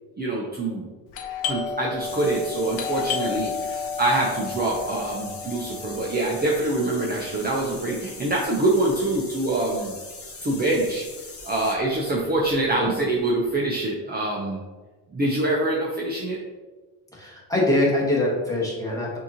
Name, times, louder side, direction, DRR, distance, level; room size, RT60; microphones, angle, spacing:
voice 1, 0.2-0.9 1.5-9.9 10.4-11.1 11.4-14.6 15.1-16.4, right 2 dB, 20° right, -3 dB, 0.6 m, -25 dB
Doorbell, 1.1-10.5 10.7-10.8 11.5-11.8 12.1-13.5, left 6 dB, 85° left, 0.8 m, -33 dB
sound 1, 2.0-11.8, left 3 dB, 30° left, 1.0 m, -41 dB
voice 2, 17.1-19.2, left 1 dB, 10° left, -4 dB, 1.3 m, -23 dB
6.2 x 2.8 x 2.8 m, 1.3 s
cardioid pair, 105°, 45 cm